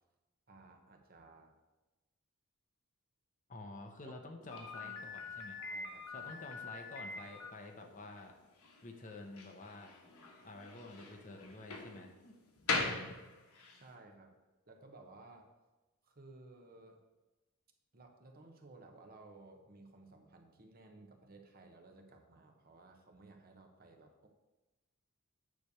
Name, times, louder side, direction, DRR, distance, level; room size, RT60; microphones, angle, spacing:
voice 1, 0.5-1.5 4.0-5.1 5.6-6.4 13.7-14.3 14.7-15.5 16.0-17.0 17.9-24.3, right 2 dB, 45° right, 3 dB, 1.1 m, -57 dB
voice 2, 3.5-5.6 6.1-8.3 8.8-9.9 10.4-12.4, left 2 dB, 35° left, 3 dB, 0.9 m, -50 dB
Slam, 4.5-13.8, left 3 dB, 85° left, 1.4 m, -42 dB
9.5 x 3.4 x 6.8 m, 1.1 s
head